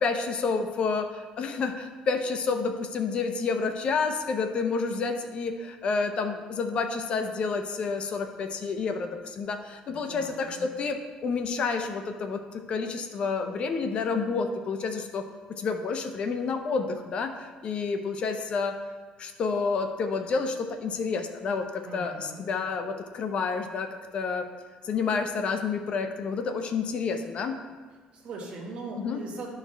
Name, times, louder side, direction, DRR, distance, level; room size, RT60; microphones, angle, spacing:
voice 1, 0.0-18.8 19.2-24.5 24.8-27.6 29.0-29.2, left 4 dB, 45° left, 6 dB, 0.7 m, -29 dB
voice 2, 9.9-10.6 21.8-22.5 28.1-29.5, right 3 dB, 50° right, 0 dB, 1.7 m, -40 dB
12.0 x 4.7 x 3.3 m, 1.4 s
cardioid pair, 125°, 3 cm